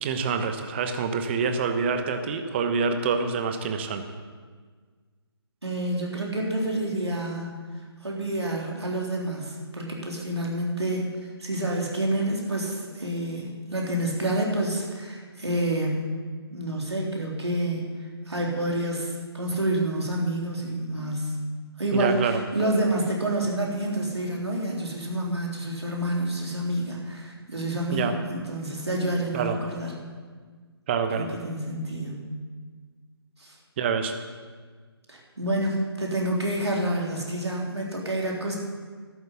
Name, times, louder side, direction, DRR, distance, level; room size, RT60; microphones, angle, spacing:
voice 1, 0.0-4.0 21.9-22.4 27.9-28.1 29.3-29.6 30.9-31.3 33.8-34.1, right 5 dB, 25° right, 7 dB, 1.0 m, -26 dB
voice 2, 5.6-7.6 8.0-11.1 11.4-16.2 16.5-17.9 18.3-21.3 21.8-29.9 31.1-32.3 33.4-33.6 35.1-38.6, right 1 dB, 90° right, -2 dB, 3.6 m, -28 dB
12.0 x 8.0 x 8.4 m, 1.5 s
figure-of-eight pair, 150°, 14 cm